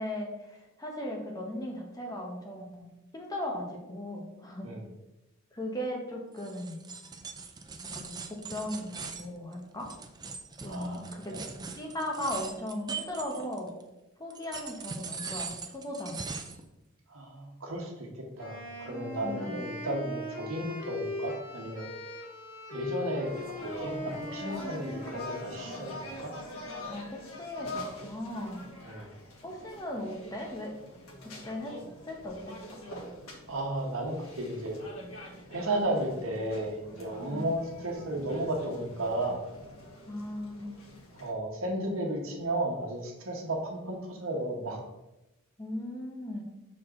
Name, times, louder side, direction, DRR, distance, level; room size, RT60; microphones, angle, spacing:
voice 1, 0.0-4.7 5.5-6.8 7.8-9.9 10.6-11.4 11.8-13.7 14.2-16.2 19.2-19.6 26.2-26.3 26.9-28.7 29.4-30.8 31.2-31.8 32.1-32.6 37.3-37.5 40.1-40.7 45.6-46.4, left 1 dB, 15° left, 0 dB, 1.0 m, -37 dB
sound 1, 6.4-13.8 14.3-16.6, right 5 dB, 20° right, 0.4 m, -41 dB
voice 2, 10.6-11.0 11.3-11.4 17.1-18.1 18.4-21.9 22.7-23.3 23.6-26.3 28.8-29.1 33.5-34.7 35.5-39.4 41.2-44.8, right 1 dB, 70° right, 1 dB, 1.3 m, -34 dB
Wind instrument woodwind instrument, 18.4-26.5, left 1 dB, 45° left, 2.3 m, -40 dB
sound 2, 23.3-41.3, left 1 dB, 80° left, 1.5 m, -44 dB
6.3 x 4.4 x 3.8 m, 0.96 s
head